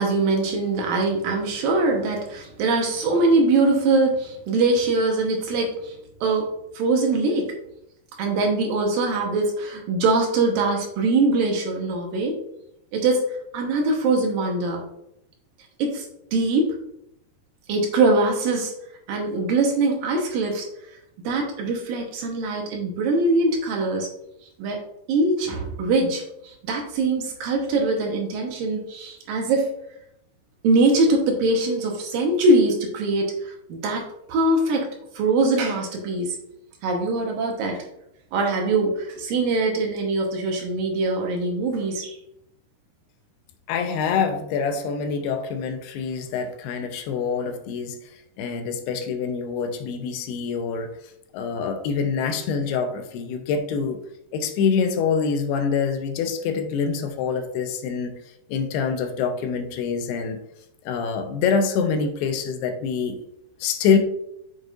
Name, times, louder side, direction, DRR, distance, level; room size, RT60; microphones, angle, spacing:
voice 1, 0.0-5.9 6.2-7.6 8.2-12.4 12.9-14.8 15.8-16.1 16.3-16.8 17.7-18.7 19.1-20.7 21.2-24.1 24.6-24.8 25.1-29.7 30.6-34.9 35.1-36.4 36.8-37.8 38.3-42.2, right 2 dB, 70° right, 1 dB, 2.7 m, -22 dB
voice 2, 43.7-48.0 48.4-50.9 51.3-54.0 54.3-58.2 58.5-60.4 60.9-63.2 63.6-64.0, left 6 dB, 90° left, 6 dB, 2.9 m, -25 dB
7.9 x 6.8 x 2.5 m, 0.79 s
omnidirectional pair, 4.5 m